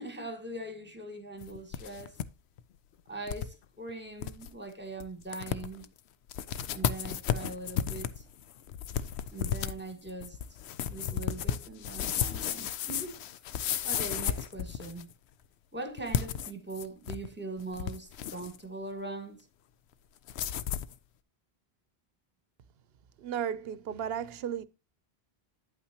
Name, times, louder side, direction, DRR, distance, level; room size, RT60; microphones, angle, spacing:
voice 1, 0.0-2.2 3.1-5.9 6.7-8.2 9.3-10.4 10.8-13.2 13.8-15.1 15.7-19.5, right 2 dB, 10° right, 1.5 m, -41 dB
sound 1, 1.4-2.3 2.6-2.7 3.3-3.5 3.9-4.0 4.2-4.5 5.0-5.1 5.3-5.9 6.3-15.1 16.0-17.3 17.6-18.6 20.3-20.9, left 9 dB, 90° left, 0.9 m, -33 dB
voice 2, 23.2-24.6, right 9 dB, 75° right, 0.8 m, -34 dB
9.2 x 8.6 x 2.8 m
omnidirectional pair, 1.1 m